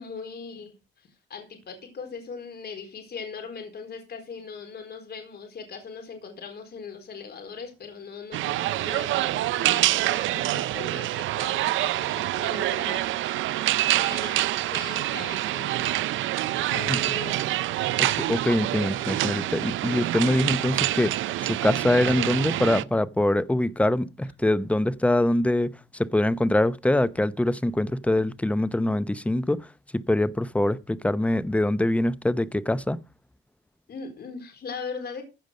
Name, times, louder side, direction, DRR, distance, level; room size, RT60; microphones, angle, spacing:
voice 1, 0.0-13.1 13.3-15.9 16.3-17.7 33.9-35.2, left 5 dB, 55° left, 4.3 m, -40 dB
sound 1, 8.3-22.8, right 15 dB, 80° right, 0.6 m, -26 dB
voice 2, 18.0-21.1 21.4-29.6 29.9-33.0, left 1 dB, 5° left, 0.8 m, -24 dB
15.0 x 5.2 x 6.4 m
cardioid pair, 90°, 20 cm